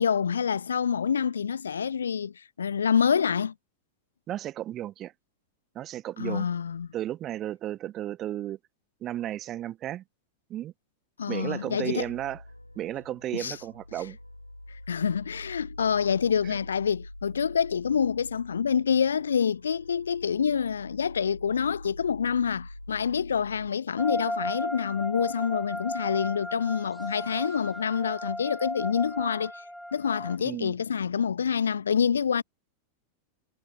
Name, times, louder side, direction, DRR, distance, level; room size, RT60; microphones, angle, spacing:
voice 1, 0.0-3.5 6.2-6.9 11.2-12.1 13.3-13.6 14.7-29.5 29.9-32.4, left 7 dB, 70° left, 0.7 m, -27 dB
voice 2, 4.3-5.1 5.7-6.5 6.9-8.6 9.0-10.0 10.5-10.7 11.3-12.4 12.8-14.2 16.5-16.6 30.4-30.7, right 12 dB, 30° right, 1.0 m, -34 dB
sound 1, 12.0-23.7, left 1 dB, 85° left, 3.8 m, -45 dB
sound 2, 24.0-30.4, equal, ahead, 0.4 m, -35 dB
figure-of-eight pair, 90°, 0 cm